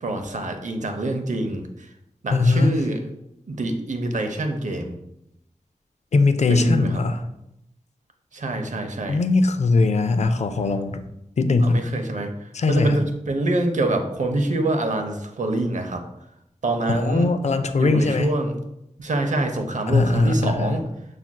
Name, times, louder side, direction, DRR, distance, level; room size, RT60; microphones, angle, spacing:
voice 1, 0.0-1.6 2.2-3.1 3.5-5.0 6.5-7.0 8.3-9.2 11.6-16.0 16.6-17.3 17.8-18.6 19.0-20.8, right 2 dB, 70° right, 5 dB, 0.6 m, -25 dB
voice 2, 2.3-2.7 6.1-7.2 9.1-11.0 11.4-11.8 12.5-13.0 16.9-18.3 19.9-20.8, left 3 dB, 60° left, 8 dB, 0.4 m, -20 dB
6.9 x 2.5 x 2.2 m, 0.83 s
wide cardioid pair, 70°, 13 cm